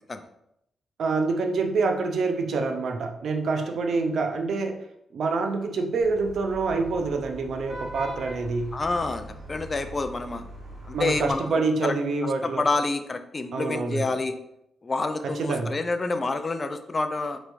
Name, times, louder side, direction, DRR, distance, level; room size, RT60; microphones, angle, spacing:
voice 1, 1.0-4.8 5.1-8.8 10.9-12.6 13.5-14.1 15.4-15.8, right 3 dB, 70° right, 5 dB, 0.5 m, -26 dB
Vehicle horn car horn honking / Traffic noise roadway noise, 6.0-11.3, right 1 dB, 35° right, 1.1 m, -41 dB
voice 2, 8.7-10.4 10.9-11.9 12.2-14.3 14.8-17.4, left 3 dB, 35° left, 8 dB, 0.4 m, -28 dB
4.4 x 3.1 x 2.6 m, 0.78 s
supercardioid pair, 55°, 0 cm